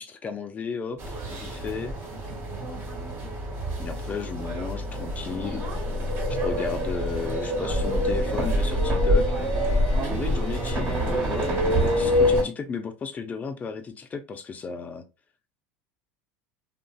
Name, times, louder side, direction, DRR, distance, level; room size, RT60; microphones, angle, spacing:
voice 1, 0.0-1.9 3.8-5.6 6.4-9.4 10.1-15.0, left 5 dB, 25° left, 0.5 m, -34 dB
sound 1, 1.0-12.4, equal, 40° right, 1.2 m, -26 dB
voice 2, 2.1-2.9 9.9-10.2, right 6 dB, 60° right, 0.7 m, -39 dB
2.9 x 2.6 x 2.3 m
supercardioid pair, 120°, 6 cm